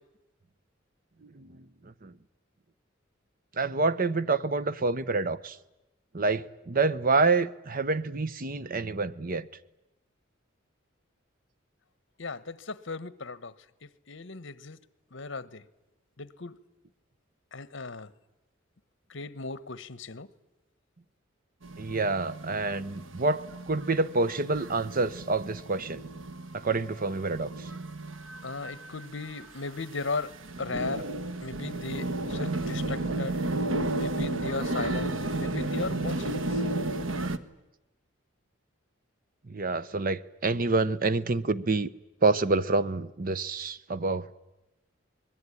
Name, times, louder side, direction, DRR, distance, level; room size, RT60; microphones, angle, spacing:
voice 1, 3.6-5.6 6.1-9.5 21.8-26.0 26.5-27.7 39.5-41.9 42.2-44.3, right 3 dB, 45° right, 0.9 m, -27 dB
voice 2, 12.2-13.5 13.8-14.8 15.1-15.6 16.2-16.6 17.5-18.1 19.1-20.3 28.4-31.1 31.4-33.4 34.0-36.7, left 3 dB, 70° left, 1.2 m, -37 dB
sound 1, 21.6-37.4, right 2 dB, 90° right, 1.4 m, -33 dB
25.5 x 21.0 x 9.8 m
head